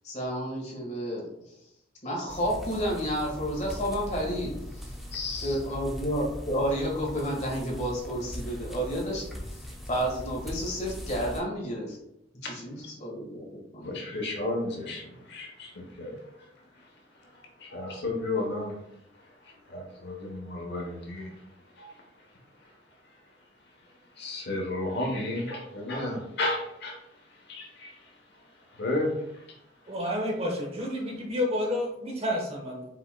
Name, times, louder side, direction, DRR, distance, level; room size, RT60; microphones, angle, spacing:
voice 1, 0.0-1.3 2.0-4.9 5.4-12.0 12.4-13.9, equal, 40° left, -3 dB, 1.5 m, -31 dB
sound 1, 2.3-11.4, equal, ahead, 0.6 m, -40 dB
voice 2, 5.1-5.6 12.4-12.5 13.8-16.1 17.6-18.7 19.7-21.3 21.8-21.9 24.2-27.0 27.5-27.9 28.8-29.1, left 2 dB, 60° left, 1 dB, 1.0 m, -32 dB
voice 3, 29.9-32.8, left 1 dB, 35° right, 0 dB, 0.9 m, -30 dB
5.3 x 4.3 x 2.2 m, 0.82 s
head